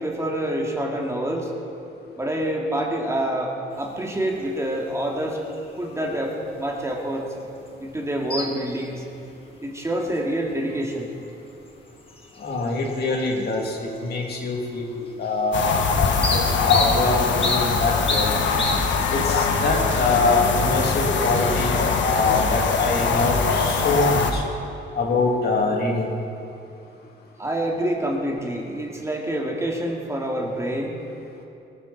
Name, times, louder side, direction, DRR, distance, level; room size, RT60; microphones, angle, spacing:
voice 1, 0.0-1.5 2.2-5.4 5.8-7.3 7.8-9.0 9.6-11.1 27.4-31.0, right 1 dB, 15° right, -1 dB, 2.3 m, -27 dB
sound 1, 3.7-21.9, left 2 dB, 30° left, 2.1 m, -35 dB
voice 2, 12.4-15.7 16.3-18.3 19.1-24.4 24.9-26.1, left 3 dB, 55° left, 0 dB, 2.7 m, -24 dB
sound 2, 15.5-24.3, left 5 dB, 70° left, 1.5 m, -22 dB
20.0 x 14.0 x 4.2 m, 2.7 s
cardioid pair, 90°, 20 cm